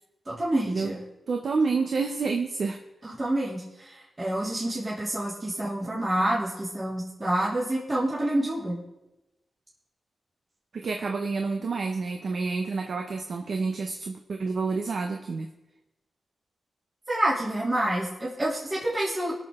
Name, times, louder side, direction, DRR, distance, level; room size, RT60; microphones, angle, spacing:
voice 1, 0.3-1.0 3.0-8.8 17.1-19.3, right 1 dB, 30° right, -7 dB, 2.8 m, -28 dB
voice 2, 1.3-2.8 10.7-15.5, right 4 dB, 70° right, 4 dB, 0.9 m, -28 dB
20.5 x 6.9 x 3.7 m, 0.99 s
cardioid pair, 75°, 0 cm